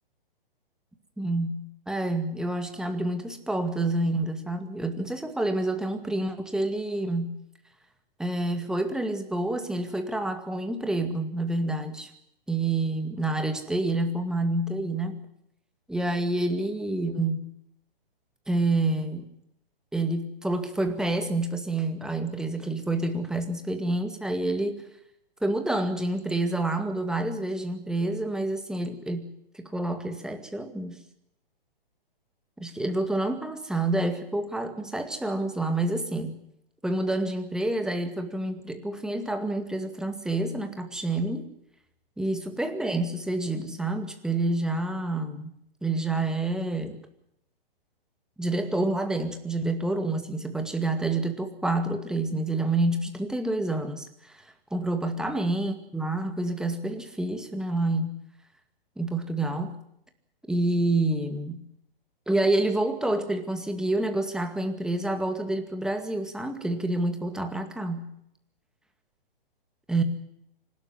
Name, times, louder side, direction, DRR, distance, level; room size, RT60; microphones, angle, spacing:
voice 1, 1.2-7.4 8.2-12.1 12.5-15.2 15.9-17.5 18.5-19.3 19.9-24.8 25.4-29.3 29.5-31.0 32.6-36.4 36.8-41.5 42.2-45.5 45.8-47.0 48.4-58.1 59.0-59.8 60.5-61.6 62.3-68.1 69.9-70.0, right 2 dB, ahead, 6 dB, 2.1 m, -28 dB
25.5 x 12.5 x 9.7 m, 0.75 s
hypercardioid pair, 130°, 29 cm